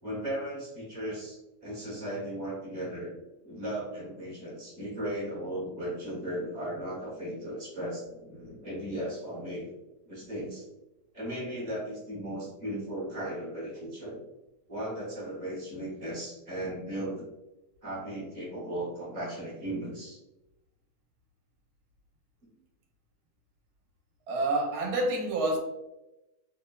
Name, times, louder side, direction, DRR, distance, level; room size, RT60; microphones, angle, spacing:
voice 1, 0.0-3.1 3.4-9.7 10.1-10.7 11.1-14.2 14.7-17.2 17.8-20.2 22.4-22.5, right 1 dB, 35° right, 0.8 m, -36 dB
voice 2, 24.3-25.6, right 2 dB, 75° right, 1.1 m, -28 dB
3.1 x 2.1 x 2.2 m
omnidirectional pair, 1.7 m